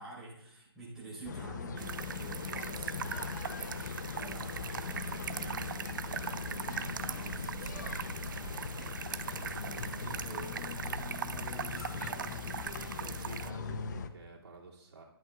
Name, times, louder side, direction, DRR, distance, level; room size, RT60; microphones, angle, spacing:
voice 1, 0.0-8.5 8.9-12.8, right 2 dB, 5° right, -9 dB, 3.7 m, -49 dB
sound 1, 1.2-14.1, left 5 dB, 45° left, 0.7 m, -40 dB
sound 2, 1.8-13.5, right 7 dB, 50° right, 0.5 m, -40 dB
voice 2, 12.8-15.0, right 3 dB, 85° right, -3 dB, 2.4 m, -50 dB
14.0 x 11.0 x 2.3 m, 0.80 s
hypercardioid pair, 160°, 13 cm